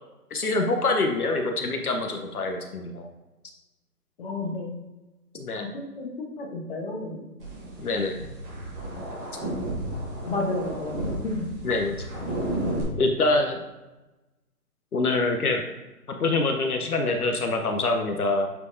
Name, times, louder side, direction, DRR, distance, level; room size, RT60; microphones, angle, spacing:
voice 1, 0.3-3.1 5.3-5.6 7.8-8.2 11.6-12.0 13.0-13.6 14.9-15.6 16.2-18.5, left 2 dB, 70° left, 3 dB, 1.0 m, -25 dB
voice 2, 4.2-4.8 5.5-7.2 10.2-11.4, left 2 dB, 35° left, 1 dB, 1.2 m, -32 dB
sound 1, 7.4-12.8, right 1 dB, 10° right, 1.3 m, -33 dB
8.5 x 4.5 x 2.7 m, 1.1 s
figure-of-eight pair, 150°, 47 cm